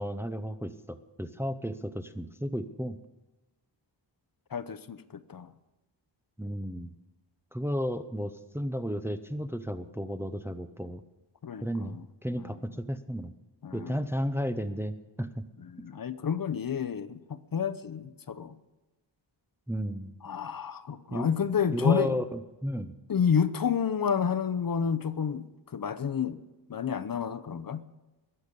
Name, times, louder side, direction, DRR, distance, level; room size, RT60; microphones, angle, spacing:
voice 1, 0.0-3.0 6.4-6.9 7.5-11.0 11.6-13.3 13.7-15.4 19.7-20.1 21.1-21.4 21.7-23.0, equal, 5° right, 0.7 m, -33 dB
voice 2, 4.5-5.5 11.4-12.0 12.4-12.6 13.6-14.0 15.6-18.6 20.2-22.2 23.1-26.4 26.7-27.8, left 7 dB, 50° left, 0.8 m, -30 dB
21.5 x 8.1 x 5.3 m
wide cardioid pair, 115°, 45 cm